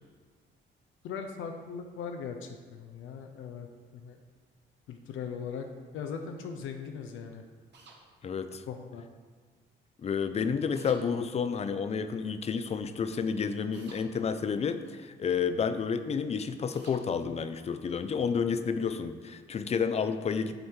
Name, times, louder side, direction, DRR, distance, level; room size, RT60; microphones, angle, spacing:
voice 1, 1.0-3.7 3.9-4.2 4.9-5.7 5.9-7.4 8.7-9.0, left 6 dB, 85° left, 5 dB, 0.6 m, -39 dB
sound 1, 7.7-8.0 10.7-11.0 13.7-14.0 16.7-17.0, right 4 dB, 60° right, 1.2 m, -52 dB
voice 2, 8.2-8.6 10.0-20.6, left 6 dB, 35° left, 10 dB, 0.4 m, -30 dB
7.7 x 3.5 x 4.4 m, 1.5 s
cardioid pair, 90°, 20 cm